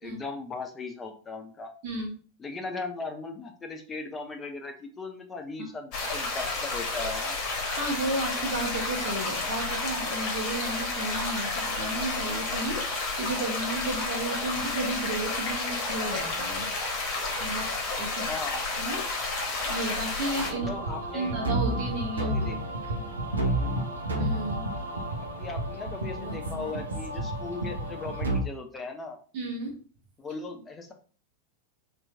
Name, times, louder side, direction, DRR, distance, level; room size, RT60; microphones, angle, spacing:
voice 1, 0.0-1.7 2.4-7.4 18.3-18.6 20.5-21.4 22.2-22.6 23.4-24.0 25.4-29.2 30.2-30.9, left 3 dB, 20° left, 4 dB, 0.6 m, -38 dB
sound 1, 5.9-20.5, left 3 dB, 40° left, 1.0 m, -31 dB
voice 2, 7.8-16.7 17.4-18.3 18.8-19.0 19.6-20.7 21.1-22.6 22.9-23.0 24.2-24.7 29.3-29.7, right 2 dB, 40° right, 1 dB, 1.1 m, -33 dB
sound 2, 20.3-28.4, right 1 dB, 75° right, 0.7 m, -31 dB
3.0 x 2.5 x 3.3 m, 0.41 s
figure-of-eight pair, 90°, 0 cm